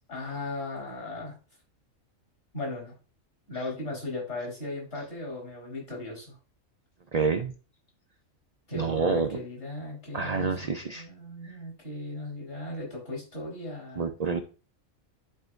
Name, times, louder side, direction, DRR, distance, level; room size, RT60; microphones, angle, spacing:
voice 1, 0.1-1.4 2.5-2.9 3.5-6.4 8.7-14.1, left 2 dB, 50° left, -1 dB, 4.2 m, -37 dB
voice 2, 7.1-7.5 8.7-9.4 10.1-11.1 14.0-14.4, right 5 dB, 65° right, 6 dB, 0.4 m, -28 dB
11.0 x 4.4 x 2.5 m, 0.35 s
omnidirectional pair, 1.4 m